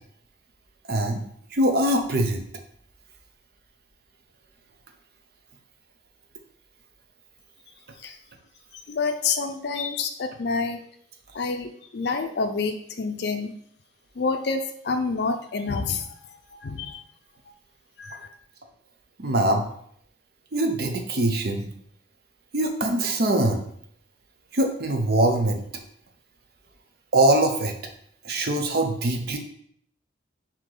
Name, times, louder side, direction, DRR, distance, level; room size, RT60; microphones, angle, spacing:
voice 1, 0.9-1.2 1.5-2.4 19.2-19.6 20.5-21.6 22.5-23.6 24.5-25.6 27.1-27.7 28.2-29.4, right 1 dB, 50° right, 4 dB, 0.6 m, -22 dB
voice 2, 8.9-10.8 11.3-11.7 11.9-13.5 14.2-16.0 16.6-17.0 18.0-18.3, left 4 dB, 55° left, 7 dB, 0.4 m, -27 dB
4.7 x 2.9 x 3.8 m, 0.68 s
head